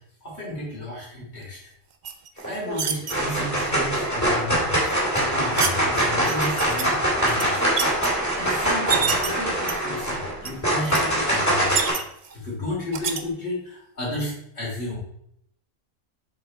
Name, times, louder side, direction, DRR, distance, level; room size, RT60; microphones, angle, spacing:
voice 1, 0.2-1.6 2.4-7.6 8.3-11.8 12.3-15.0, left 1 dB, 55° left, -5 dB, 3.4 m, -33 dB
sound 1, 2.0-3.1 4.9-5.8 6.3-6.8 7.2-8.1 8.6-9.3 9.7-10.1 10.4-10.5 10.8-11.0 11.3-12.3 12.9-13.2, right 6 dB, 50° right, 0.5 m, -28 dB
sound 2, 2.4-2.8 3.1-11.9, right 1 dB, 10° left, 2.5 m, -23 dB
6.6 x 4.7 x 4.5 m, 0.72 s
omnidirectional pair, 1.4 m